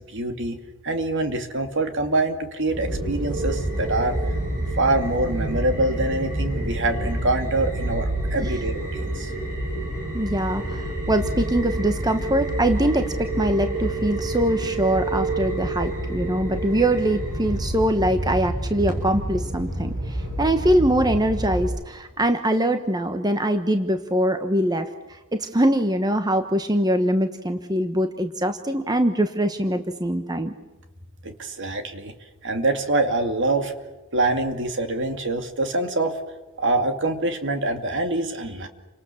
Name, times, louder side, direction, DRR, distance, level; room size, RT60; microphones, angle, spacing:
voice 1, 0.1-0.6 0.8-4.2 4.8-9.3 31.2-32.1 32.4-33.7 34.1-36.2 36.6-38.7, right 2 dB, 55° right, 6 dB, 2.6 m, -25 dB
sound 1, 2.7-21.6, right 1 dB, 40° right, 7.8 m, -28 dB
voice 2, 10.1-30.5, right 1 dB, 20° right, 7 dB, 1.1 m, -23 dB
29.5 x 25.5 x 7.2 m, 1.2 s
head